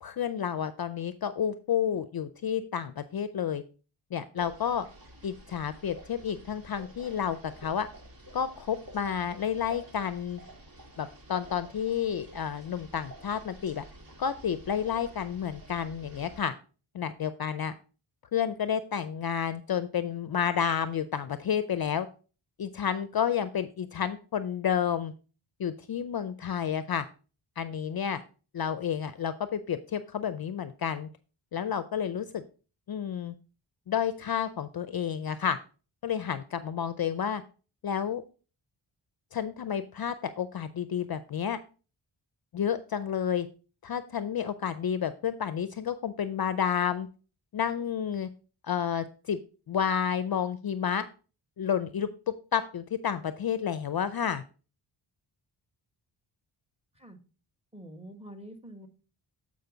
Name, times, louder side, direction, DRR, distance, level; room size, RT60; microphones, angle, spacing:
voice 1, 0.0-3.6 4.1-4.9 5.2-7.9 8.3-10.4 11.0-13.8 14.2-16.5 16.9-17.7 18.3-22.1 22.6-25.1 25.6-27.0 27.6-28.2 28.5-31.1 31.5-32.4 32.9-33.3 33.9-35.6 36.0-37.4 37.8-38.2 39.3-41.6 42.5-43.5 43.8-47.1 47.5-48.3 48.6-49.4 49.7-51.1 51.6-52.1 52.5-54.4, left 8 dB, 50° left, 12 dB, 0.5 m, -30 dB
sound 1, 4.4-16.4, right 1 dB, 45° right, 1.8 m, -50 dB
voice 2, 57.7-58.9, right 1 dB, 10° right, 6 dB, 1.5 m, -46 dB
8.0 x 5.1 x 3.8 m, 0.36 s
cardioid pair, 65°, 50 cm